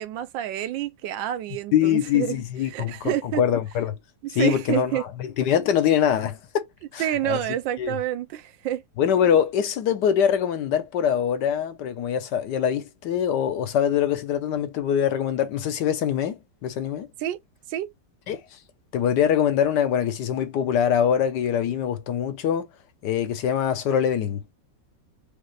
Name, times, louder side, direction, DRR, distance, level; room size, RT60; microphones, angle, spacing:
voice 1, 0.0-3.4 4.2-5.0 7.0-8.8 17.2-17.4 17.7-17.9, right 12 dB, 80° right, 1.3 m, -28 dB
voice 2, 1.7-4.0 4.3-6.6 6.9-7.4 7.8-8.0 9.0-17.1 18.3-18.4 18.9-22.7 23.0-24.4, left 9 dB, 70° left, 1.3 m, -23 dB
5.1 x 2.4 x 3.1 m
omnidirectional pair, 2.1 m